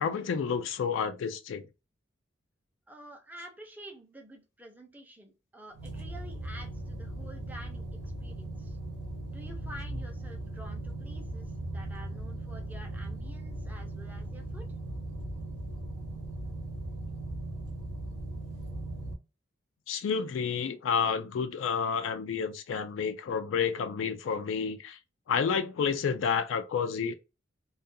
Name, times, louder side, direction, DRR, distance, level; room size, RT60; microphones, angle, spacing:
voice 1, 0.0-1.6 19.9-25.0 25.3-27.1, left 6 dB, 80° left, 0.3 m, -30 dB
voice 2, 2.9-7.9 8.2-8.8 9.3-14.6, equal, 10° right, 0.6 m, -49 dB
sound 1, 5.7-19.1, right 1 dB, 70° right, 0.8 m, -38 dB
2.4 x 2.3 x 2.6 m
head